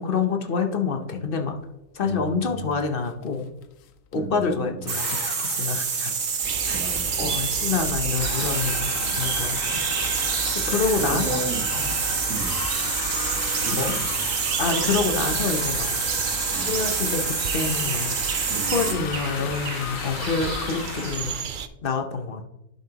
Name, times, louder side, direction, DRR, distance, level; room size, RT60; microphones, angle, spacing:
voice 1, 0.0-1.6 1.9-3.5 4.1-6.1 6.7-6.8 7.2-8.9 9.2-9.8 10.7-11.4 11.7-12.0 13.7-13.9 14.6-15.9 16.6-18.2 18.7-21.4 21.8-22.4, left 5 dB, 45° left, 5 dB, 0.9 m, -27 dB
voice 2, 2.0-2.8 4.1-4.9 6.7-7.3 9.0-9.3 11.0-11.6 12.3-12.6 13.6-14.3 16.5-16.8 18.5-19.1 19.4-19.5, right 3 dB, 55° right, 3 dB, 1.6 m, -35 dB
sound 1, 2.5-2.7 3.0-4.3 4.8-21.4, left 9 dB, 75° left, 1.0 m, -36 dB
sound 2, 4.9-19.0, right 6 dB, 90° right, 1.5 m, -27 dB
sound 3, 6.4-21.7, right 7 dB, 70° right, 0.4 m, -32 dB
11.0 x 5.6 x 2.9 m, 0.86 s
omnidirectional pair, 1.4 m